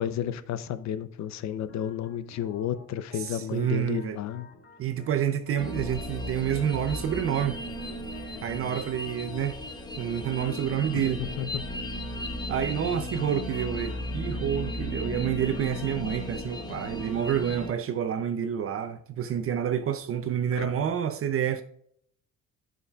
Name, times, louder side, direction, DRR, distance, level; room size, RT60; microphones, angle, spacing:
voice 1, 0.0-4.5 10.9-11.6 20.5-20.7, left 10 dB, 60° left, 0.7 m, -32 dB
Organ, 1.7-16.7, left 2 dB, 40° left, 1.6 m, -53 dB
voice 2, 3.2-4.2 4.8-7.6 8.4-9.6 10.0-11.3 12.5-21.6, right 9 dB, 45° right, 0.5 m, -28 dB
sound 1, 5.6-17.7, left 1 dB, 15° left, 0.9 m, -35 dB
16.0 x 5.5 x 2.4 m
cardioid pair, 150°, 31 cm